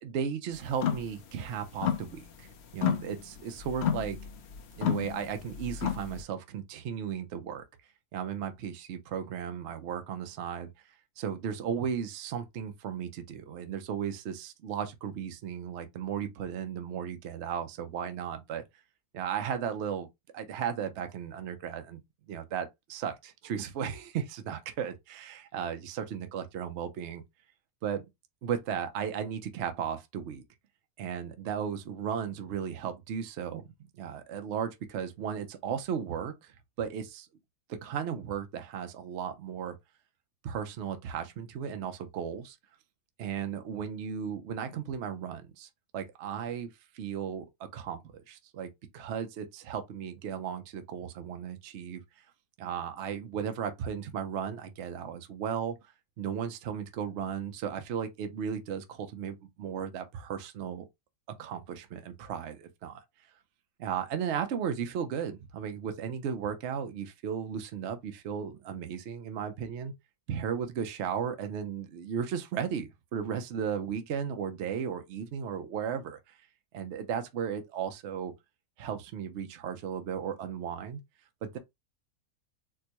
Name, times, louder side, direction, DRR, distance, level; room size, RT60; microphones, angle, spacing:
voice 1, 0.0-4.2 4.8-7.6 8.1-10.7 11.2-18.6 19.1-20.1 20.3-22.0 22.3-27.2 27.8-28.1 28.4-30.4 31.0-33.7 33.9-37.3 37.7-39.8 40.4-42.6 43.2-46.7 46.9-52.0 52.6-55.8 56.2-60.8 61.4-63.0 63.8-69.9 70.3-76.2 76.7-78.3 78.8-81.0 81.4-81.6, right 8 dB, 60° right, 0.8 m, -35 dB
sound 1, 0.7-1.1 1.4-2.5 2.7-6.2, left 9 dB, 60° left, 0.7 m, -31 dB
4.4 x 2.1 x 2.9 m
omnidirectional pair, 1.6 m